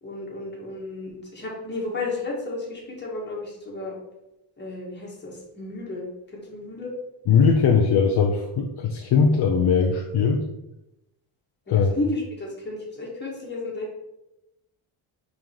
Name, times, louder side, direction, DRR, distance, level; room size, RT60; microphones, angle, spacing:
voice 1, 0.0-3.9 4.6-6.1 6.3-6.9 11.7-14.0, left 2 dB, 20° left, -4 dB, 1.9 m, -33 dB
voice 2, 7.3-10.4 11.7-12.0, left 5 dB, 50° left, 1 dB, 0.7 m, -20 dB
5.2 x 4.0 x 4.7 m, 0.91 s
cardioid pair, 145°, 49 cm